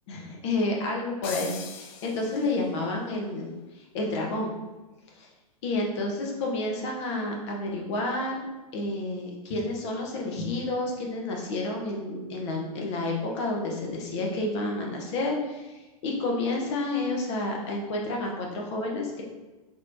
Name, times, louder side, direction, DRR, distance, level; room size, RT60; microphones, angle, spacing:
voice 1, 0.1-3.5 3.8-4.5 5.2-5.3 5.6-8.5 8.7-19.2, left 2 dB, 50° left, -1 dB, 1.0 m, -30 dB
sound 1, 1.2-2.9, left 7 dB, 30° left, 0.4 m, -41 dB
4.1 x 3.1 x 2.7 m, 1.2 s
figure-of-eight pair, 105°, 19 cm